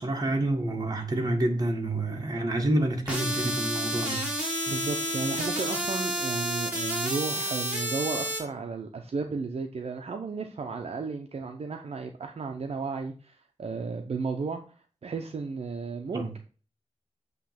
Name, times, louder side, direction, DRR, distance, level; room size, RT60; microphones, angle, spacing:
voice 1, 0.0-4.3 16.1-16.3, right 1 dB, 35° right, 1.7 m, -28 dB
sound 1, 3.1-8.4, right 1 dB, 10° right, 2.9 m, -30 dB
voice 2, 4.7-14.6 15.0-16.4, right 4 dB, 60° right, 0.7 m, -34 dB
8.3 x 3.1 x 5.9 m
wide cardioid pair, 115°, 12 cm